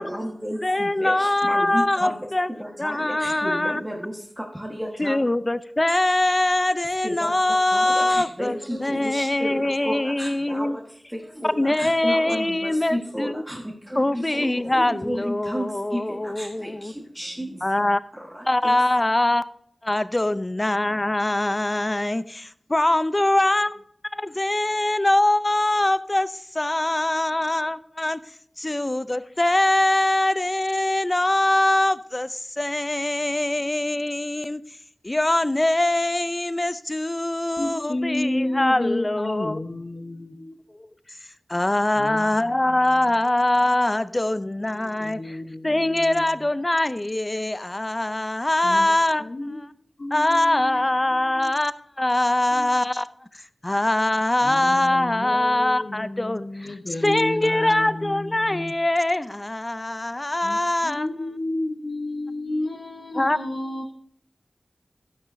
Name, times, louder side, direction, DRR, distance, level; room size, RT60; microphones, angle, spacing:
voice 1, 0.0-2.1 2.5-5.2 7.0-7.3 7.7-10.8 11.1-17.6 18.3-18.8, equal, 10° right, -2 dB, 1.3 m, -32 dB
voice 2, 0.6-2.5 2.8-3.8 5.0-10.8 11.4-13.4 14.0-16.9 17.6-18.0 18.5-19.4 19.8-23.8 24.0-28.2 28.6-34.6 35.0-39.6 40.8-40.9 41.5-45.4 45.6-49.3 49.5-49.7 50.1-53.1 53.6-56.7 57.0-61.1 63.1-63.4, left 1 dB, 30° left, 14 dB, 0.5 m, -23 dB
voice 3, 37.6-40.6 42.0-43.1 44.8-46.3 48.6-48.9 49.2-49.6 50.0-51.5 52.5-52.7 54.4-58.7 60.4-63.9, left 1 dB, 55° left, 4 dB, 0.9 m, -31 dB
12.0 x 9.5 x 2.6 m, 0.64 s
wide cardioid pair, 50°, 0 cm